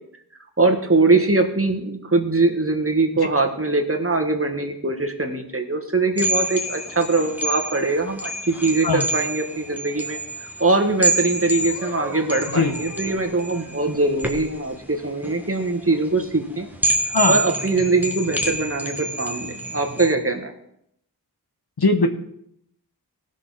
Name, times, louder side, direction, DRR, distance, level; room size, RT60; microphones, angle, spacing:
voice 1, 0.6-16.7 17.3-20.5, right 3 dB, 35° right, 4 dB, 1.5 m, -22 dB
sound 1, 6.2-20.1, right 2 dB, 5° right, 1.3 m, -28 dB
voice 2, 21.8-22.1, left 3 dB, 70° left, 6 dB, 1.1 m, -18 dB
17.5 x 6.4 x 4.1 m, 0.73 s
wide cardioid pair, 40°, 40 cm